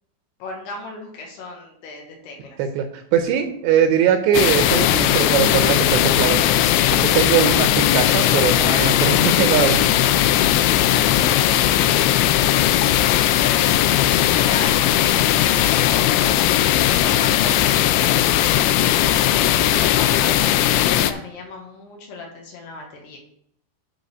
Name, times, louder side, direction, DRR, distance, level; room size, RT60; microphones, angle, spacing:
voice 1, 0.4-2.6 11.2-13.1 13.4-23.2, left 3 dB, 65° left, 1 dB, 3.1 m, -36 dB
voice 2, 3.1-6.4 7.0-9.9, right 8 dB, 80° right, 6 dB, 2.7 m, -20 dB
sound 1, 4.3-21.1, left 12 dB, 85° left, 2.6 m, -18 dB
11.0 x 4.0 x 6.6 m, 0.69 s
omnidirectional pair, 5.7 m